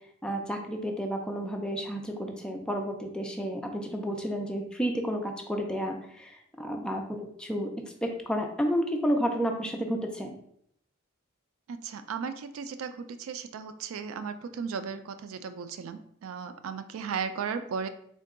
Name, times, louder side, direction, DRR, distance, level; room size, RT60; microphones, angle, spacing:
voice 1, 0.2-7.7 8.0-10.3, equal, 5° left, 2 dB, 0.4 m, -31 dB
voice 2, 11.7-17.9, right 6 dB, 85° right, 10 dB, 0.3 m, -36 dB
3.7 x 2.2 x 3.6 m, 0.68 s
head